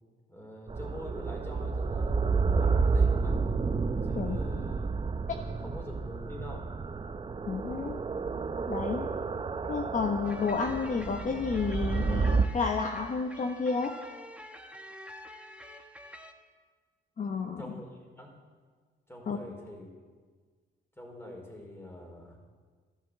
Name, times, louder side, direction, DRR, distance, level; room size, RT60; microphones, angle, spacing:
voice 1, 0.3-3.4 4.0-4.9 5.5-6.7 17.6-18.3 19.1-19.9 21.0-22.4, left 1 dB, 10° left, 1 dB, 4.7 m, -45 dB
sound 1, 0.7-12.5, right 4 dB, 25° right, 0.7 m, -30 dB
voice 2, 7.5-8.0 8.7-9.1 9.6-13.9 17.2-17.7 19.3-19.4, left 5 dB, 40° left, 4 dB, 1.2 m, -31 dB
sound 2, 10.2-16.3, left 1 dB, 5° right, 1.3 m, -47 dB
14.5 x 11.5 x 8.0 m, 1.5 s
cardioid pair, 90°, 20 cm